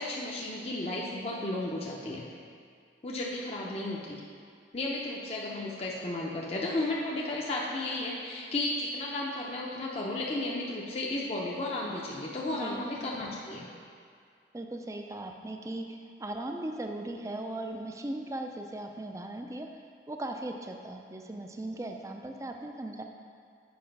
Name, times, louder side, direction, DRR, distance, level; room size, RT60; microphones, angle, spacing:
voice 1, 0.0-2.2 3.0-4.2 4.7-13.7, left 2 dB, 35° left, -3 dB, 0.6 m, -34 dB
voice 2, 14.5-19.7 20.1-23.0, right 1 dB, 15° right, 3 dB, 0.4 m, -38 dB
7.8 x 5.0 x 5.2 m, 2.2 s
head